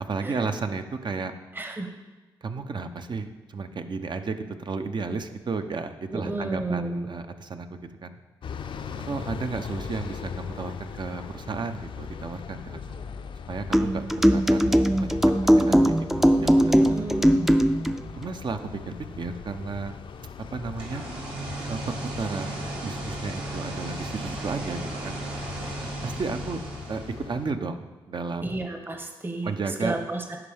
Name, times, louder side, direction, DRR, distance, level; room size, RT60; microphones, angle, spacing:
voice 1, 0.0-1.3 2.4-8.2 9.1-13.0 13.5-15.2 15.5-17.1 18.2-18.6 18.9-19.9 20.5-21.0 21.7-25.2 26.0-26.6 26.9-28.7 29.4-29.9, right 4 dB, 50° right, 8 dB, 0.7 m, -33 dB
voice 2, 1.5-1.9 6.1-7.1 16.7-17.6 28.4-30.4, right 2 dB, 20° right, 5 dB, 0.9 m, -32 dB
sound 1, 8.4-27.5, left 6 dB, 60° left, 0.5 m, -39 dB
sound 2, 13.7-18.0, equal, 5° right, 0.4 m, -20 dB
sound 3, 20.6-27.4, right 2 dB, 70° right, 2.0 m, -36 dB
11.0 x 4.6 x 3.5 m, 1.2 s
supercardioid pair, 45°, 10 cm